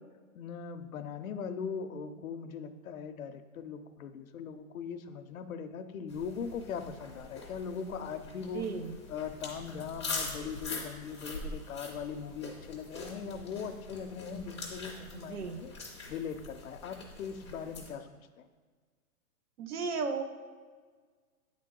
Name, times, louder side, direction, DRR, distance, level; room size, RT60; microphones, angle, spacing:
voice 1, 0.3-8.7 9.1-15.7 16.1-18.1 18.4-18.5, left 6 dB, 70° left, 9 dB, 0.6 m, -40 dB
sound 1, 6.1-17.9, left 3 dB, 20° left, 0.5 m, -43 dB
voice 2, 8.5-8.9 15.1-15.6 19.6-20.2, right 5 dB, 90° right, 7 dB, 0.8 m, -35 dB
8.7 x 3.8 x 3.7 m, 1.5 s
hypercardioid pair, 180°, 44 cm